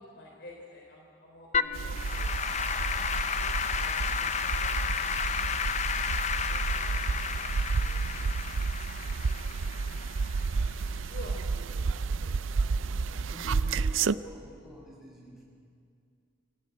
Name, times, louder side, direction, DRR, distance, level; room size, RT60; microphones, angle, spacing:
voice 1, 0.0-2.3 3.3-5.4 6.3-6.9 7.3-8.5 8.9-9.7 11.1-12.3, left 1 dB, 55° left, -1 dB, 3.6 m, -51 dB
Applause / Keyboard (musical), 1.5-10.9, left 6 dB, 35° left, 0.6 m, -32 dB
sound 1, 1.7-14.1, right 4 dB, 80° right, 0.5 m, -31 dB
voice 2, 12.6-15.4, equal, ahead, -5 dB, 6.8 m, -50 dB
27.5 x 15.0 x 9.3 m, 2.4 s
head